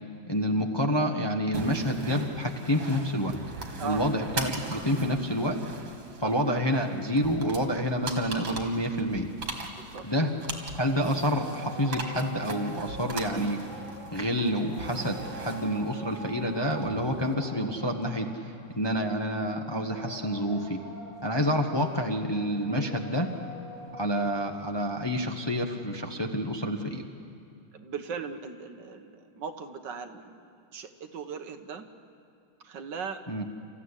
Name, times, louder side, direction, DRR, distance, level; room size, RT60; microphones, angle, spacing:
voice 1, 0.3-3.4 3.8-5.6 6.2-9.3 10.0-10.4 10.8-13.6 14.1-18.3 18.8-20.8 21.2-23.3 24.0-27.0 33.3-33.4, equal, 15° left, 3 dB, 1.0 m, -28 dB
sound 1, 1.5-17.3, right 3 dB, 85° right, 3.0 m, -40 dB
voice 2, 6.1-6.7 9.8-10.0 27.7-31.8 32.6-33.2, right 6 dB, 65° right, 7 dB, 1.8 m, -39 dB
sound 2, 10.0-26.4, equal, 20° right, 8.3 m, -45 dB
29.0 x 14.5 x 9.9 m, 2.5 s
omnidirectional pair, 2.1 m